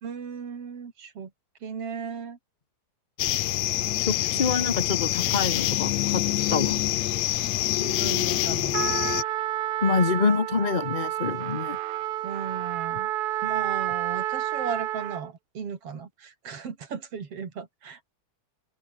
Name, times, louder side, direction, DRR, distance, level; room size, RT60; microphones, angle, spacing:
voice 1, 0.0-1.3 1.6-2.4 4.2-4.4 7.7-8.9 12.2-13.1 13.4-18.0, right 6 dB, 50° right, 3.4 m, -36 dB
sound 1, 3.2-9.2, left 15 dB, 70° left, 1.9 m, -26 dB
voice 2, 4.1-6.2 6.5-6.8 9.8-11.8, left 4 dB, 55° left, 0.5 m, -26 dB
Trumpet, 8.7-15.3, right 14 dB, 75° right, 2.3 m, -30 dB
open air
omnidirectional pair, 3.6 m